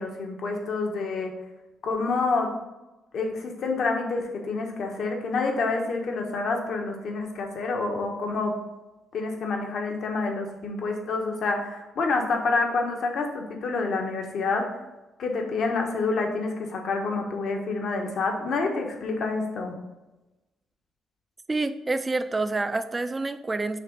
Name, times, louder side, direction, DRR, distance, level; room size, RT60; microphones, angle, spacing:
voice 1, 0.0-1.3 1.8-2.5 3.1-8.6 9.1-14.7 15.2-19.7, left 3 dB, 65° left, 2 dB, 1.2 m, -28 dB
voice 2, 21.5-23.8, right 3 dB, 25° right, 10 dB, 0.5 m, -27 dB
6.5 x 3.2 x 5.2 m, 1.0 s
cardioid pair, 90°, 0 cm